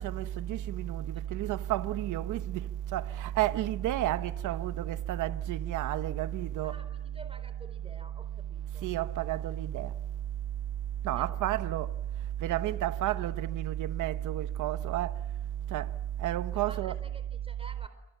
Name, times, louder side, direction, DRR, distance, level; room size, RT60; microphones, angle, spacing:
voice 1, 0.0-6.7 8.8-9.9 11.0-11.9 12.4-15.1 15.7-15.9 16.2-16.9, right 13 dB, 85° right, 1.0 m, -31 dB
voice 2, 6.6-8.9 11.1-11.4 16.5-17.9, right 3 dB, 20° right, 4.2 m, -51 dB
28.0 x 26.5 x 7.5 m
cardioid pair, 90°, 30 cm